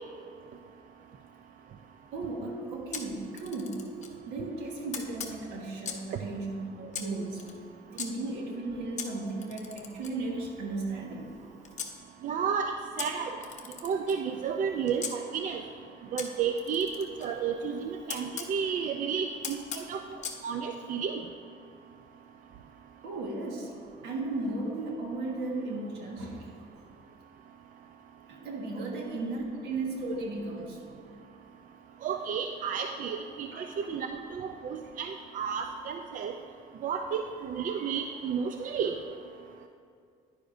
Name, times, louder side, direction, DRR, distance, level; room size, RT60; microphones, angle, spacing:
voice 1, 2.1-3.9 4.3-7.5 8.0-11.3 23.0-23.7 24.0-26.5 28.3-30.8 33.5-34.0, right 2 dB, 80° right, 0 dB, 1.6 m, -35 dB
Camera, 2.9-4.2 4.9-6.1 6.9-8.1 9.0-11.9 13.0-15.1 16.2-18.5 19.4-20.4, left 7 dB, 45° left, 0.9 m, -41 dB
voice 2, 12.2-13.4 13.8-15.6 16.1-16.9 17.2-20.0 20.4-21.2 32.0-36.3 36.8-38.9, right 6 dB, 50° right, 5 dB, 0.5 m, -32 dB
10.5 x 9.9 x 2.6 m, 2.3 s
cardioid pair, 110°, 17 cm